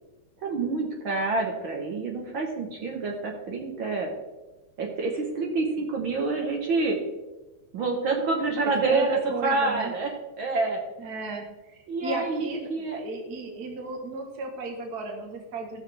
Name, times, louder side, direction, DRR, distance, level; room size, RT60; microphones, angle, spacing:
voice 1, 0.4-4.1 4.8-7.0 7.7-10.1 10.4-10.8 11.9-13.0, right 3 dB, 65° right, 1 dB, 1.2 m, -27 dB
voice 2, 8.6-9.9 11.0-15.8, right 3 dB, 90° right, 2 dB, 0.8 m, -35 dB
16.5 x 6.3 x 3.4 m, 1.1 s
omnidirectional pair, 3.9 m